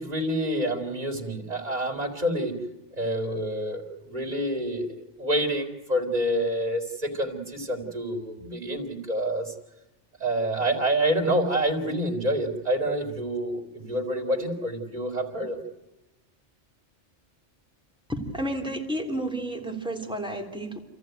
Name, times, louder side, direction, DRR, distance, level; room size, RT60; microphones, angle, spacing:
voice 1, 0.0-2.6 2.9-9.5 10.2-15.6, right 1 dB, 35° right, 1 dB, 3.5 m, -27 dB
voice 2, 18.1-20.8, right 1 dB, 5° right, 2 dB, 3.2 m, -31 dB
28.0 x 14.5 x 9.3 m, 1.0 s
omnidirectional pair, 1.2 m